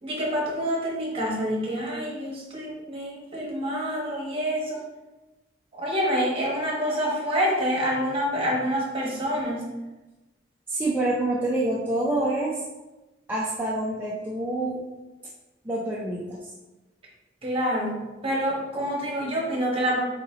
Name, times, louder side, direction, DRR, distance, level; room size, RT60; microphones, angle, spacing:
voice 1, 0.0-4.8 5.7-9.6 17.4-20.0, equal, 30° right, -4 dB, 1.2 m, -27 dB
voice 2, 10.7-12.6 13.3-14.8 15.6-16.4, right 1 dB, 10° right, -6 dB, 0.5 m, -27 dB
4.1 x 4.0 x 2.8 m, 1.1 s
head